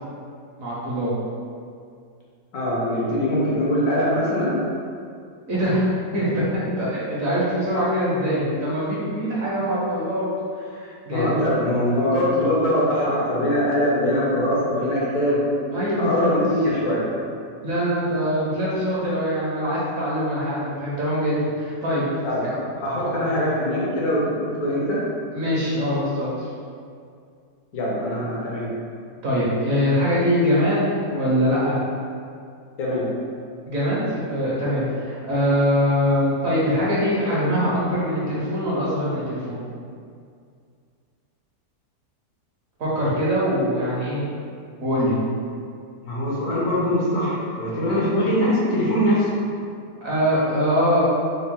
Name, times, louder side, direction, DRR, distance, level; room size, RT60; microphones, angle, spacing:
voice 1, 0.6-1.1 5.5-10.3 10.6-11.4 15.7-16.3 17.6-22.1 22.4-22.5 25.3-26.5 29.2-31.8 33.7-39.6 42.8-44.2 44.8-45.2 50.0-51.0, equal, 60° right, -7 dB, 1.1 m, -23 dB
voice 2, 2.5-4.5 11.1-15.4 16.0-17.1 22.2-22.4 22.8-25.0 27.7-28.7 32.8-33.0 46.0-49.3, left 1 dB, 65° left, -5 dB, 1.2 m, -22 dB
4.0 x 2.2 x 3.6 m, 2.3 s
omnidirectional pair, 1.8 m